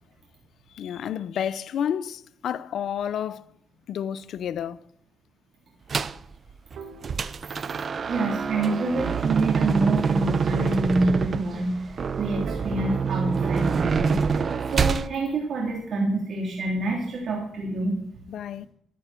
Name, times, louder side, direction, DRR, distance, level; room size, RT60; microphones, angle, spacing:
voice 1, 0.7-3.5 3.9-4.8 18.3-18.7, left 9 dB, 70° left, 0.6 m, -30 dB
sound 1, 5.9-6.2 6.7-15.1, right 5 dB, 45° right, 0.6 m, -26 dB
sound 2, 6.8-7.9 8.2-8.3 8.7-10.2 10.6-12.0 12.5-14.3, right 7 dB, 80° right, 1.9 m, -44 dB
voice 2, 8.0-14.4 14.7-18.0, right 2 dB, 60° right, 3.7 m, -27 dB
13.5 x 13.0 x 4.5 m
cardioid pair, 90°, 0 cm